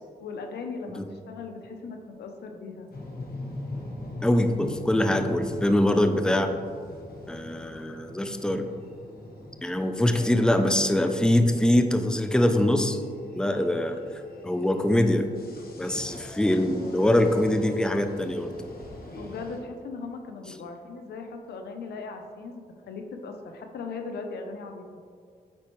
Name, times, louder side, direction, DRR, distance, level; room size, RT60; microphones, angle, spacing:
voice 1, 0.2-2.9 10.1-10.6 19.2-24.9, left 4 dB, 90° left, 5 dB, 0.6 m, -38 dB
sound 1, 2.9-19.6, left 1 dB, 65° left, 1.3 m, -42 dB
voice 2, 4.2-6.5 7.3-8.7 9.6-13.0 13.3-14.0 14.4-15.3 15.8-18.5, left 1 dB, 5° left, 7 dB, 0.5 m, -23 dB
8.6 x 4.2 x 3.1 m, 2.2 s
cardioid pair, 60°, 17 cm